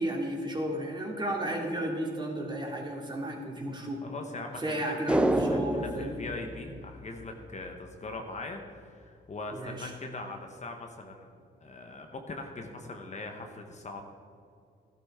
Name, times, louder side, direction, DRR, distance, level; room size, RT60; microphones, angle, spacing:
voice 1, 0.0-4.0 4.6-6.2 9.5-9.9, right 1 dB, 20° right, 0 dB, 2.4 m, -33 dB
voice 2, 4.0-5.2 5.5-14.1, left 2 dB, 35° left, 3 dB, 1.1 m, -41 dB
sound 1, 5.1-7.6 7.8-7.9, right 1 dB, 5° right, 0.6 m, -29 dB
12.5 x 12.0 x 3.7 m, 2.4 s
cardioid pair, 90°, 20 cm